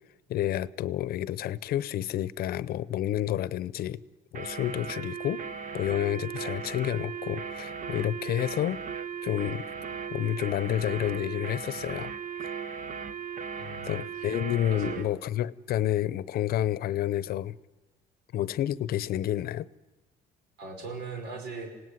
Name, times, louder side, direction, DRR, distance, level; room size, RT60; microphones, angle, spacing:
voice 1, 0.3-4.0 4.3-5.4 5.7-8.8 9.2-9.7 10.1-12.1 12.4-12.6 13.9-17.6 18.3-19.7, left 12 dB, 65° left, 0.7 m, -29 dB
sound 1, 4.3-15.1, right 6 dB, 50° right, 1.3 m, -37 dB
voice 2, 13.5-14.3 14.7-15.2 20.6-21.7, right 4 dB, 85° right, 5.3 m, -40 dB
26.5 x 17.5 x 9.7 m
cardioid pair, 110°, 17 cm